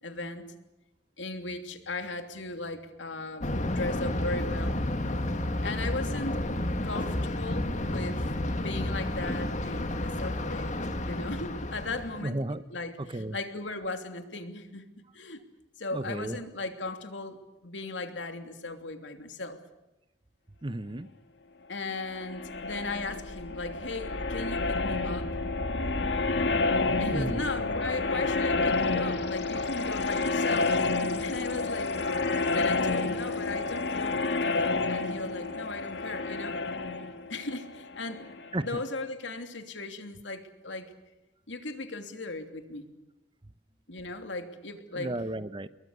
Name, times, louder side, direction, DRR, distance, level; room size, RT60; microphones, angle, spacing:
voice 1, 0.0-0.5 1.2-3.5 3.7-4.8 5.6-6.4 6.8-12.4 12.7-14.9 15.1-15.4 15.8-19.6 21.7-25.3 27.0-32.0 32.5-36.6 37.3-38.3 38.6-40.9 41.5-42.9 43.9-45.2, left 2 dB, 90° left, 7 dB, 3.0 m, -37 dB
Thunder, 3.4-12.2, left 1 dB, 40° left, 2.0 m, -31 dB
voice 2, 12.2-12.6 13.0-13.4 15.9-16.4 20.6-21.1 27.1-27.5 38.5-38.7 44.9-45.7, right 1 dB, 25° right, 14 dB, 0.9 m, -33 dB
sound 1, 22.1-38.7, left 3 dB, 70° left, 2.0 m, -29 dB
28.5 x 22.0 x 6.8 m, 0.98 s
head